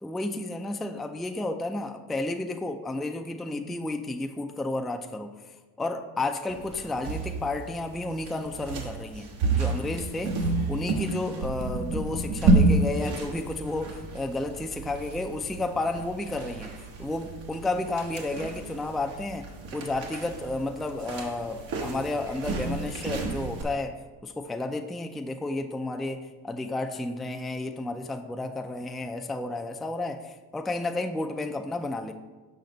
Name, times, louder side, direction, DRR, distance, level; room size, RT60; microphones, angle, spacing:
voice 1, 0.0-10.4 10.7-16.7 17.0-32.1, left 2 dB, ahead, 5 dB, 0.4 m, -32 dB
sound 1, 6.5-23.6, right 3 dB, 80° right, 1.3 m, -30 dB
6.7 x 5.6 x 3.9 m, 1.3 s
supercardioid pair, 60°, 46 cm